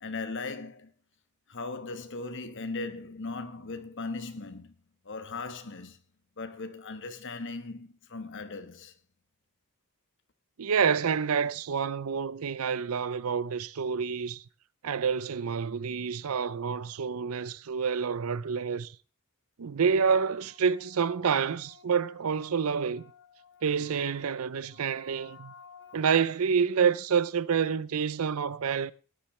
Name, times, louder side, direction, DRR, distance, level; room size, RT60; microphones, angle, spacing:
voice 1, 0.0-0.9 1.5-4.7 5.0-6.0 6.4-8.9 21.4-21.9 22.6-26.0, left 3 dB, 55° left, 1.3 m, -40 dB
voice 2, 10.6-14.4 14.8-18.9 19.6-23.0 23.6-25.5 25.9-28.9, right 6 dB, 70° right, 0.5 m, -28 dB
18.0 x 10.5 x 3.2 m
head